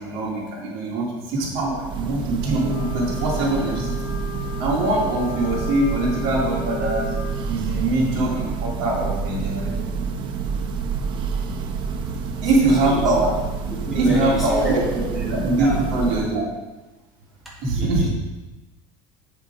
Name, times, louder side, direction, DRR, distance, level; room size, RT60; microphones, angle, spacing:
voice 1, 0.0-3.9 4.6-7.1 7.5-9.8 12.4-13.3 13.9-15.0 15.3-16.5 17.6-18.1, right 2 dB, 70° right, -3 dB, 2.5 m, -22 dB
Church bell, 1.6-16.5, right 5 dB, 40° right, 0.8 m, -28 dB
Wind instrument woodwind instrument, 2.6-7.5, left 5 dB, 75° left, 0.9 m, -36 dB
voice 2, 13.7-15.9 17.7-18.1, right 1 dB, ahead, -8 dB, 2.8 m, -29 dB
7.8 x 6.5 x 4.9 m, 1.1 s
cardioid pair, 155°, 12 cm